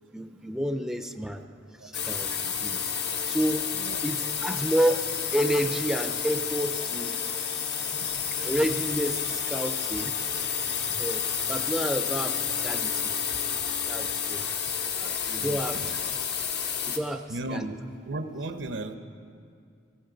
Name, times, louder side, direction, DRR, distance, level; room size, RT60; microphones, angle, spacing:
voice 1, 0.1-1.5 1.8-2.8 3.3-3.7 4.0-5.0 5.3-7.6 8.4-10.4 10.9-13.1 13.9-14.4 15.0-15.8 16.8-17.3 17.5-17.7, equal, 5° right, 7 dB, 0.4 m, -30 dB
sound 1, 1.9-17.0, left 7 dB, 65° left, 1.0 m, -30 dB
voice 2, 7.9-8.3 15.4-15.9 17.3-17.8 18.0-19.0, right 2 dB, 85° right, 9 dB, 0.8 m, -36 dB
18.0 x 15.5 x 3.9 m, 2.3 s
head